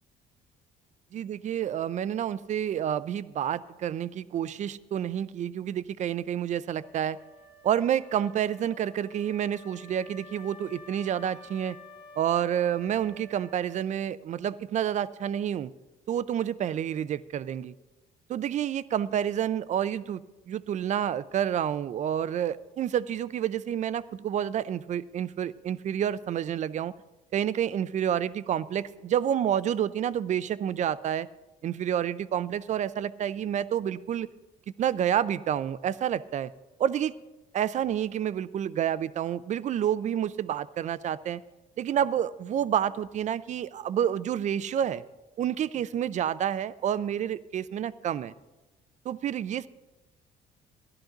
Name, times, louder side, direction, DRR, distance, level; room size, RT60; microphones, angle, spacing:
voice 1, 1.1-7.2 7.6-11.8 12.2-15.7 16.1-17.7 18.3-20.2 20.5-26.9 27.3-31.3 31.6-34.3 34.8-36.5 36.8-37.1 37.5-41.4 41.8-45.0 45.4-48.3 49.0-49.7, right 10 dB, 45° right, 16 dB, 0.5 m, -29 dB
Wind instrument woodwind instrument, 6.8-14.3, left 2 dB, 30° left, 1.9 m, -51 dB
14.5 x 12.0 x 3.9 m, 1.1 s
cardioid pair, 110°, 17 cm